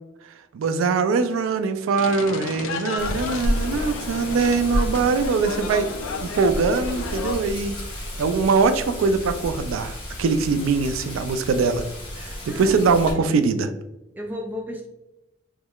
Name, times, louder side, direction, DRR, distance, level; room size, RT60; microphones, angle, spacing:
voice 1, 0.5-5.9 6.2-7.8 8.2-11.8 12.2-13.7, right 4 dB, 85° right, 10 dB, 0.3 m, -22 dB
sound 1, 2.0-7.4, left 5 dB, 80° left, 0.3 m, -33 dB
Wind, 3.0-13.1, equal, 25° left, 1.4 m, -31 dB
voice 2, 12.5-13.6 14.1-14.9, equal, 10° right, 3 dB, 0.3 m, -35 dB
3.7 x 3.1 x 2.3 m, 0.95 s
head